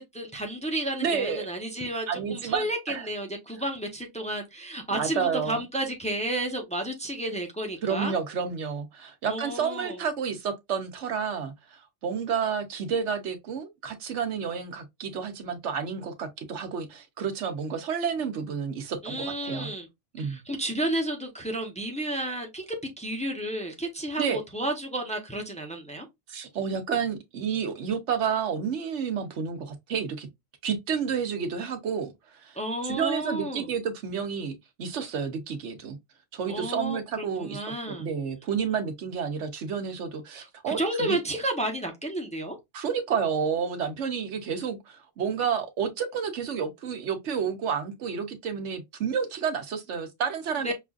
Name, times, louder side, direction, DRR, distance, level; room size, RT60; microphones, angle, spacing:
voice 1, 0.0-8.1 9.3-10.0 19.0-19.9 20.2-26.1 32.6-33.7 36.5-38.1 40.3-42.6 50.6-50.7, right 1 dB, 5° left, 0.7 m, -32 dB
voice 2, 1.0-1.5 2.1-3.0 4.9-5.6 7.8-19.7 20.1-20.4 24.2-24.4 26.3-30.3 30.6-32.6 32.8-36.0 36.3-41.2 42.7-50.7, right 6 dB, 85° right, 1.1 m, -30 dB
5.9 x 2.5 x 2.3 m
omnidirectional pair, 1.2 m